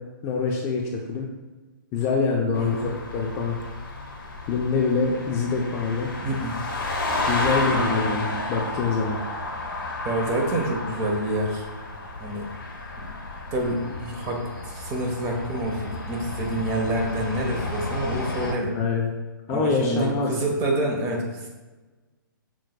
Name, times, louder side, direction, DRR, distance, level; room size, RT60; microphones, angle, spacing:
voice 1, 0.2-1.3 1.9-3.6 4.5-6.1 7.2-9.2 18.7-19.1 19.5-20.5, left 4 dB, 25° left, 0 dB, 0.5 m, -25 dB
sound 1, 2.5-18.5, left 2 dB, 75° left, 0.9 m, -32 dB
voice 2, 2.6-2.9 6.2-6.6 7.8-8.0 10.0-11.7 12.2-12.5 13.5-18.7 19.5-21.5, right 1 dB, 25° right, 0 dB, 0.9 m, -27 dB
6.2 x 3.8 x 2.2 m, 1.2 s
hypercardioid pair, 140°, 12 cm